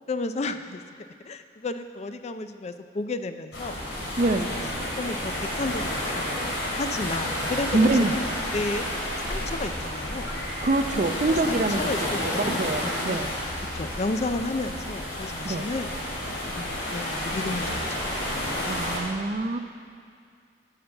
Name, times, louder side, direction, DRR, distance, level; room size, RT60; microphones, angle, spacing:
voice 1, 0.1-0.8 1.2-3.8 4.3-4.6 5.0-7.9 8.5-8.8 9.3-10.3 11.3-13.2 13.7-15.9 16.5-18.1 18.3-18.7, left 2 dB, 35° left, 9 dB, 0.4 m, -32 dB
sound 1, 3.5-19.0, left 1 dB, 85° left, 3.0 m, -30 dB
voice 2, 4.2-4.5 7.7-8.1 10.6-11.8 12.6-13.3 15.4-15.7 18.6-19.6, right 2 dB, 40° right, 9 dB, 0.5 m, -24 dB
14.0 x 5.9 x 6.5 m, 2.2 s
head